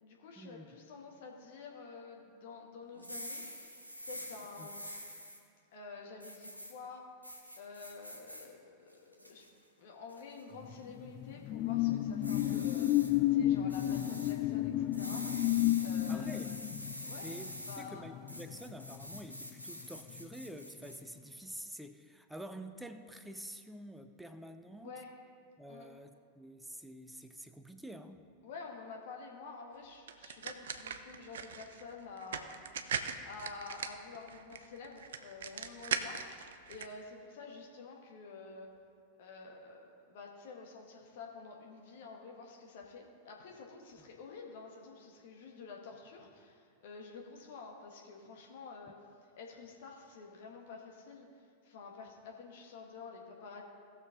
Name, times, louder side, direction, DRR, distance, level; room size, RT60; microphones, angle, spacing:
voice 1, 0.0-3.4 4.1-4.8 5.7-7.0 7.6-9.5 9.8-12.9 13.3-15.2 15.8-16.5 17.1-17.3 17.6-18.0 24.7-25.1 25.7-25.9 28.4-32.5 33.2-36.2 36.7-38.7 39.2-48.9 49.4-53.6, left 4 dB, 55° left, 0 dB, 1.3 m, -49 dB
sound 1, 2.9-5.4 6.2-6.7 7.2-8.5 8.9-9.5 10.1-10.4 12.2-13.1 13.7-14.3 14.9-17.8 18.3-21.0, equal, 90° right, 1.2 m, -46 dB
sound 2, 10.6-19.6 20.0-20.2, left 14 dB, 35° left, 0.3 m, -32 dB
voice 2, 16.1-16.6 17.2-24.9 25.6-28.2, right 1 dB, 5° right, 8 dB, 0.6 m, -48 dB
sound 3, 30.1-36.9, right 7 dB, 60° right, 0.5 m, -40 dB
17.5 x 6.7 x 3.7 m, 2.4 s
figure-of-eight pair, 90°, 0 cm